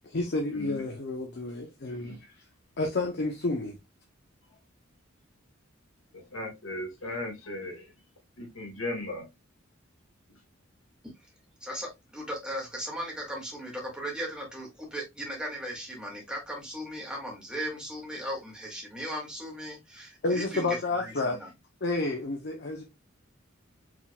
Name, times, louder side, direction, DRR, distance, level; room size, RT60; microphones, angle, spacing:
voice 1, 0.0-2.3 2.8-3.8 20.2-21.4 21.8-22.8, left 2 dB, 55° left, 0.7 m, -30 dB
voice 2, 6.3-7.9 8.4-9.3, left 2 dB, 85° left, 2.0 m, -36 dB
voice 3, 11.6-21.5, equal, 5° right, 1.8 m, -37 dB
4.8 x 3.7 x 2.2 m
head